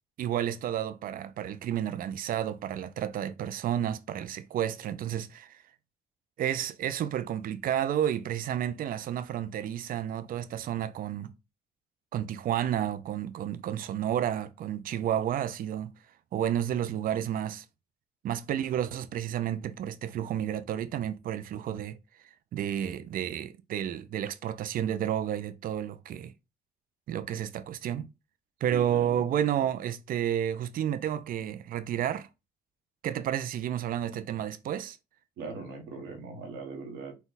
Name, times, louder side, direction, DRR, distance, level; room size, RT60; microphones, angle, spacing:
voice 1, 0.2-5.6 6.4-11.3 12.1-15.9 16.3-17.6 18.2-22.0 22.5-26.3 27.1-28.1 28.6-32.3 33.0-35.0, right 10 dB, 55° right, 0.5 m, -31 dB
voice 2, 28.7-29.3 35.4-37.2, right 4 dB, 85° right, 1.2 m, -40 dB
4.2 x 2.3 x 3.9 m
cardioid pair, 90°, 17 cm